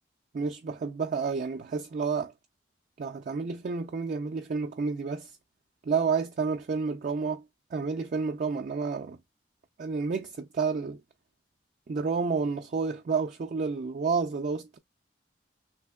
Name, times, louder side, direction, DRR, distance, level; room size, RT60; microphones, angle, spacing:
voice 1, 0.3-2.3 3.0-5.4 5.9-7.4 7.7-9.2 9.8-11.0 11.9-14.8, right 5 dB, 50° right, 0.4 m, -30 dB
3.2 x 2.7 x 2.2 m
head